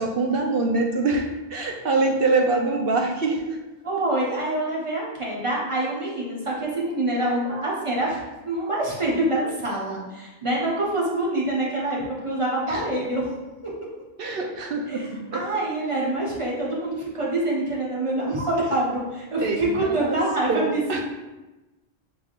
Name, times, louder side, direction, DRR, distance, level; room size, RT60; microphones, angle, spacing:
voice 1, 0.0-3.4 12.7-12.8 14.2-15.4 19.4-20.2 20.5-21.0, right 3 dB, 60° right, 2 dB, 0.8 m, -24 dB
voice 2, 3.8-8.2 8.4-13.3 14.9-21.0, right 1 dB, 30° right, -5 dB, 1.1 m, -26 dB
5.9 x 3.5 x 2.4 m, 1.1 s
omnidirectional pair, 1.1 m